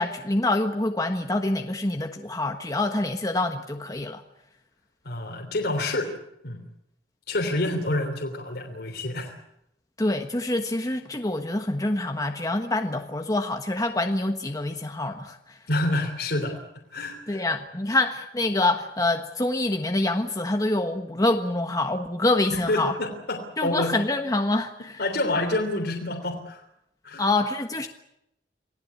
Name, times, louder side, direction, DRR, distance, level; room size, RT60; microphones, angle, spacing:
voice 1, 0.0-4.2 10.0-15.6 17.3-23.0 23.6-25.0 27.2-27.9, left 2 dB, 20° left, 4 dB, 1.3 m, -26 dB
voice 2, 5.0-6.1 6.4-6.6 7.3-9.3 15.7-16.5 16.9-17.4 22.5-23.9 25.0-26.6 27.0-27.2, left 2 dB, 65° left, 1 dB, 3.5 m, -28 dB
27.5 x 17.5 x 8.4 m, 0.82 s
head